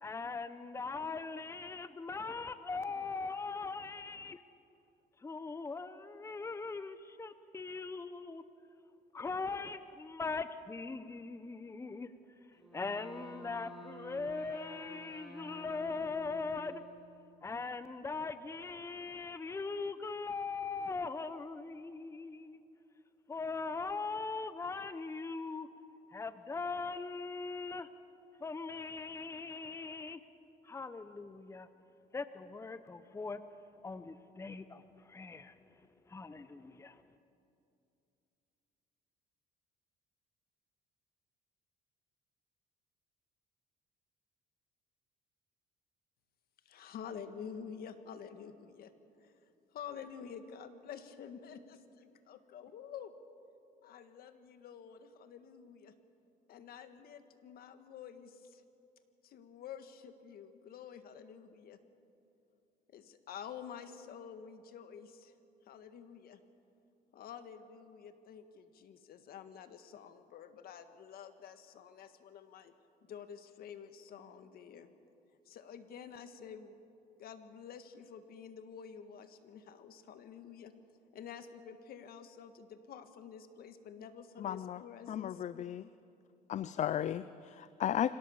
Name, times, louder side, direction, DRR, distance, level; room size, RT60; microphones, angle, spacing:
voice 1, 0.0-4.4 5.2-8.4 9.1-12.1 12.7-16.8 17.4-22.6 23.3-25.7 26.1-27.9 28.4-30.2 30.6-31.7 32.1-33.4 33.8-35.5 36.1-37.0, left 4 dB, 15° left, 12 dB, 0.8 m, -40 dB
Wind instrument woodwind instrument, 12.5-17.4, right 2 dB, ahead, 7.4 m, -52 dB
voice 2, 46.6-48.9 49.2-49.4 49.7-53.1 53.8-55.9 56.5-58.6 59.2-61.8 62.9-65.3 65.6-66.4 67.1-72.7 73.0-74.9 75.4-76.8 77.2-80.7 81.1-85.4, left 7 dB, 65° left, 9 dB, 1.6 m, -49 dB
voice 3, 84.4-84.8 85.1-85.9 86.5-88.1, left 10 dB, 45° left, 16 dB, 0.5 m, -35 dB
25.5 x 18.0 x 7.2 m, 2.7 s
cardioid pair, 110°, 17 cm